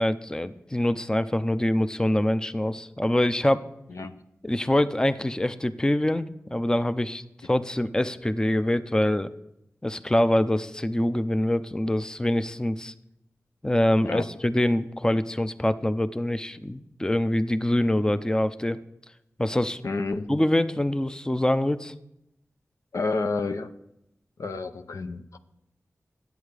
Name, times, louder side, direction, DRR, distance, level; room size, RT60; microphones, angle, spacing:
voice 1, 0.0-3.6 4.4-6.3 6.5-9.3 9.8-12.9 13.6-18.8 19.4-19.8 20.3-21.9, left 1 dB, 15° left, 12 dB, 0.6 m, -24 dB
voice 2, 3.9-4.2 14.0-14.3 19.8-20.3 22.9-23.7 24.4-25.4, left 3 dB, 70° left, 8 dB, 0.7 m, -30 dB
10.5 x 8.2 x 5.0 m, 0.84 s
cardioid pair, 40°, 6 cm